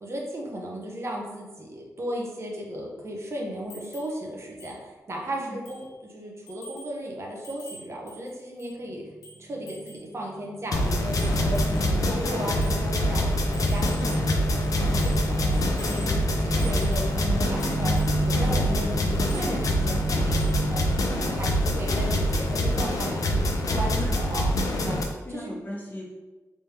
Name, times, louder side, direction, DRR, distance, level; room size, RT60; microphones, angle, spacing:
voice 1, 0.0-9.0 9.4-15.5 15.8-18.0 18.3-20.4 20.7-24.5 24.8-25.0 25.3-25.5, equal, 45° right, -1 dB, 0.9 m, -35 dB
sound 1, 3.7-4.2 4.6-4.8 5.1-5.2 5.7-5.9 6.5-7.0 7.4-8.8 9.2-10.1 10.8-12.0 12.6-12.8 13.5-14.3 14.6-15.3 15.5-16.1 16.6-17.2 17.6-18.2 19.1-19.5 20.4-20.6 20.9-21.0, right 1 dB, 85° left, 1.3 m, -47 dB
sound 2, 9.0-9.2 9.6-20.8, right 2 dB, 5° left, 0.8 m, -32 dB
sound 3, 10.7-25.0, left 1 dB, 65° left, 0.6 m, -25 dB
voice 2, 24.8-26.0, left 1 dB, 30° left, -4 dB, 1.1 m, -38 dB
3.4 x 3.3 x 2.9 m, 1.2 s
cardioid pair, 60°, 6 cm